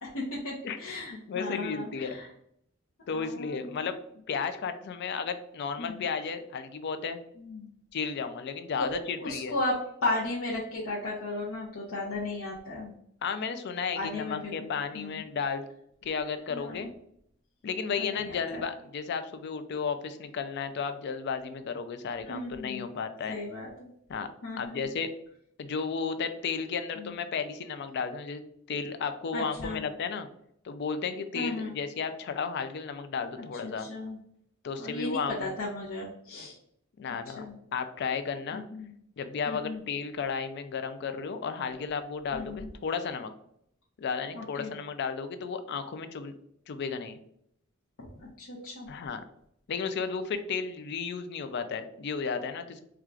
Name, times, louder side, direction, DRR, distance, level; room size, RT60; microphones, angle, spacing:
voice 1, 0.0-2.3 3.1-3.9 5.8-6.0 7.4-7.7 8.8-8.9 9.2-9.7 10.0-12.9 14.0-14.7 14.9-15.3 16.5-16.9 18.0-18.6 22.2-22.9 23.3-23.7 24.4-24.9 27.0-27.1 29.3-29.9 31.3-31.8 33.4-34.2 34.8-36.6 37.3-37.5 38.5-38.9 39.5-39.8 42.3-42.7 44.3-44.7 48.0-48.9, left 2 dB, 80° left, -7 dB, 0.8 m, -35 dB
voice 2, 1.3-2.2 3.1-4.0 4.3-7.2 7.9-9.6 13.2-15.7 16.0-16.9 17.6-23.4 24.1-24.3 24.6-25.1 25.6-28.4 28.7-30.3 30.6-33.9 34.6-35.5 37.0-38.7 39.2-43.3 44.0-46.4 46.7-47.2 48.9-49.2 49.7-52.8, left 5 dB, 55° left, 9 dB, 0.4 m, -33 dB
4.4 x 2.4 x 2.4 m, 0.72 s
head